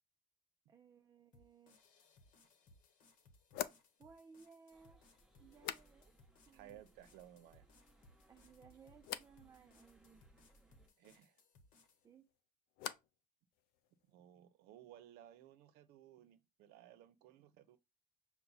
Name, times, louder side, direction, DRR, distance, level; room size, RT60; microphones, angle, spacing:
voice 1, 0.7-1.8 4.0-5.0 5.4-6.1 6.5-6.8 8.3-10.2 12.0-12.3, right 6 dB, 20° right, 0.3 m, -62 dB
sound 1, 1.3-12.0, left 2 dB, 55° left, 0.9 m, -68 dB
sound 2, 2.3-2.4 3.5-6.4 6.6-7.2 7.6-8.2 9.0-9.4 11.8-13.3 13.5-14.1, left 12 dB, 70° left, 0.4 m, -49 dB
sound 3, 4.7-10.9, right 2 dB, 5° right, 1.0 m, -69 dB
voice 2, 6.5-7.7 11.0-11.4 14.1-17.8, right 12 dB, 80° right, 0.7 m, -59 dB
5.8 x 2.1 x 4.0 m
cardioid pair, 150°, 16 cm